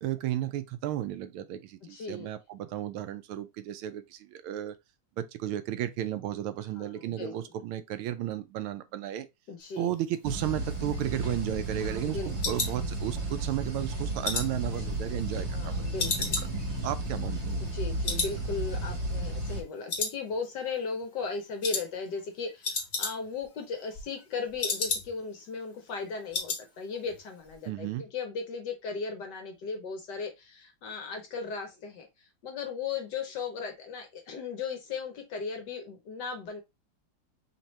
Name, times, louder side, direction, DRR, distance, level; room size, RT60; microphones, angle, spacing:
voice 1, 0.0-4.7 5.2-9.3 9.8-15.7 16.2-16.5 16.8-17.6 27.7-28.0, right 12 dB, 80° right, 1.4 m, -34 dB
voice 2, 1.9-2.3 6.8-7.3 9.5-9.9 12.0-12.6 15.5-16.4 17.7-36.6, left 5 dB, 65° left, 1.2 m, -37 dB
sound 1, 10.2-19.6, right 2 dB, 40° right, 1.1 m, -33 dB
sound 2, 10.7-13.5 13.8-15.6 16.0-17.8 18.0-18.4 18.7-18.8 19.2-19.6 19.9-20.7 21.0-21.2 21.6-21.9 22.2-22.3 22.5-23.5 23.8-25.4 25.7-25.8 26.0-26.6 26.9-27.2 27.5-27.6, left 4 dB, 45° left, 0.9 m, -34 dB
4.5 x 2.9 x 3.0 m
omnidirectional pair, 2.4 m